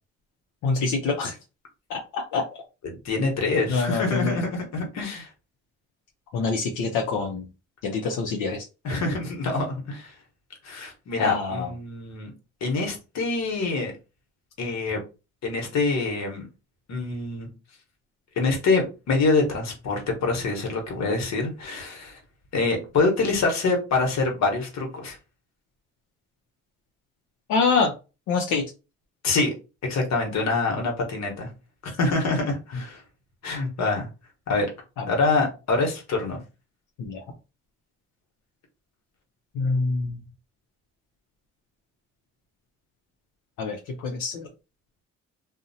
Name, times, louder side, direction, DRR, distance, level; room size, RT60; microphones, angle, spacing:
voice 1, 0.6-1.4 1.9-2.4 3.7-4.4 6.3-7.5 7.8-8.6 11.2-11.7 27.5-27.9 28.3-28.6 35.0-35.1 37.0-37.2 39.5-40.2 43.6-44.5, left 4 dB, 85° left, 2 dB, 0.6 m, -25 dB
voice 2, 2.8-5.3 8.8-10.1 10.6-12.3 12.6-13.9 14.6-15.0 15.4-16.5 16.9-17.5 18.4-22.2 22.5-25.2 29.2-29.5 29.9-31.5 31.8-33.0 33.4-34.1 34.5-34.7 35.1-36.4, left 3 dB, 65° left, 1 dB, 1.0 m, -25 dB
2.6 x 2.0 x 2.6 m, 0.30 s
cardioid pair, 90°, 30 cm